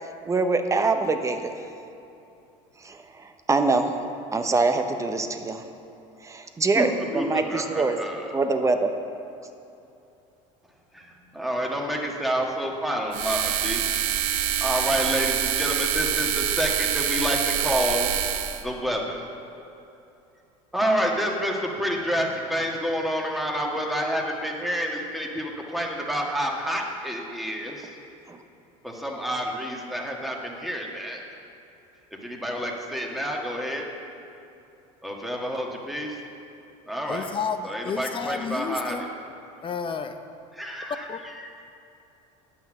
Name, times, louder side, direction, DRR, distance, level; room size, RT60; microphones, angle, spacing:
voice 1, 0.3-1.5 2.8-3.9 4.3-5.7 6.2-8.0 8.3-8.9 28.3-28.4, right 3 dB, 20° right, 6 dB, 0.8 m, -24 dB
voice 2, 6.7-8.2 10.9-13.8 14.6-18.1 18.6-19.3 20.7-27.9 28.8-31.2 32.2-33.9 35.0-36.2 36.9-37.3 37.6-38.9 40.5-41.0, equal, ahead, -1 dB, 1.5 m, -28 dB
sound 1, 13.1-18.6, right 10 dB, 85° right, 0.7 m, -26 dB
voice 3, 37.1-39.1 39.6-40.2 41.1-41.2, left 6 dB, 30° left, 8 dB, 0.6 m, -31 dB
9.2 x 5.8 x 7.4 m, 2.7 s
supercardioid pair, 95°, 17 cm